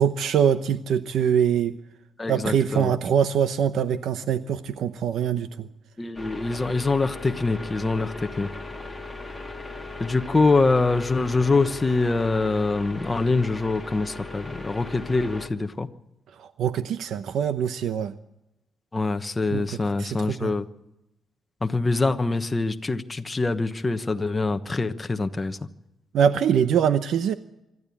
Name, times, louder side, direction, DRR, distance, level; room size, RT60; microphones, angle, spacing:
voice 1, 0.0-1.8 2.3-5.7 16.4-18.1 19.5-19.6 20.0-20.5 26.1-27.3, right 8 dB, 70° right, 11 dB, 0.8 m, -23 dB
voice 2, 2.2-2.9 6.0-8.5 10.0-15.9 18.9-20.7 21.6-25.6, left 3 dB, 15° left, 7 dB, 1.1 m, -24 dB
sound 1, 6.1-15.5, left 2 dB, ahead, 2.0 m, -38 dB
25.5 x 12.5 x 8.6 m, 0.92 s
cardioid pair, 150°, 0 cm